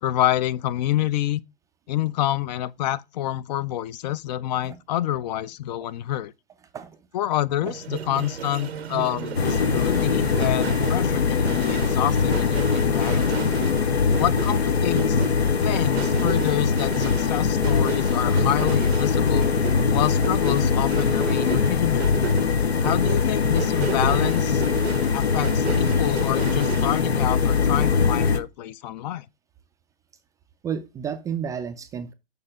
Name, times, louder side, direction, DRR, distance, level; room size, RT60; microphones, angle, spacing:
voice 1, 0.0-1.4 1.9-6.3 7.1-13.4 14.2-15.3 15.6-19.5 19.9-22.1 22.8-24.6 25.1-29.3, left 13 dB, 45° left, 0.5 m, -27 dB
sound 1, 7.6-27.0, right 7 dB, 90° right, 0.9 m, -35 dB
sound 2, 9.4-28.4, left 5 dB, 90° left, 0.9 m, -22 dB
voice 2, 30.6-32.1, right 7 dB, 10° right, 0.3 m, -31 dB
6.7 x 5.4 x 4.9 m
hypercardioid pair, 120°, 31 cm